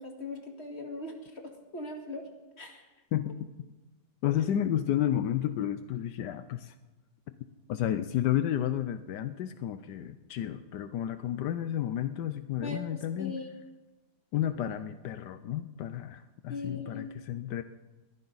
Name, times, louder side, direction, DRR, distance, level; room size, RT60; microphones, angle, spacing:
voice 1, 0.0-1.4 1.7-2.2 2.6-2.8 12.6-13.5 16.5-17.1, left 3 dB, 40° left, 2 dB, 2.4 m, -39 dB
voice 2, 4.2-6.7 7.7-13.3 14.3-17.6, left 11 dB, 85° left, 10 dB, 1.3 m, -31 dB
22.0 x 15.0 x 4.1 m, 1.1 s
omnidirectional pair, 1.8 m